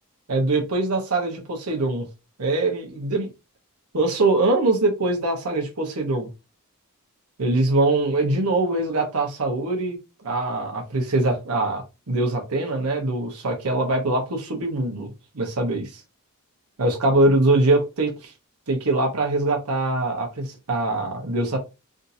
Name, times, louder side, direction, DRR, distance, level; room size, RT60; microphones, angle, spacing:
voice 1, 0.3-2.0 2.4-3.3 3.9-6.3 7.4-10.0 10.2-16.0 16.8-18.3 18.7-21.6, right 2 dB, 75° right, 1.0 m, -23 dB
3.5 x 2.6 x 2.8 m
head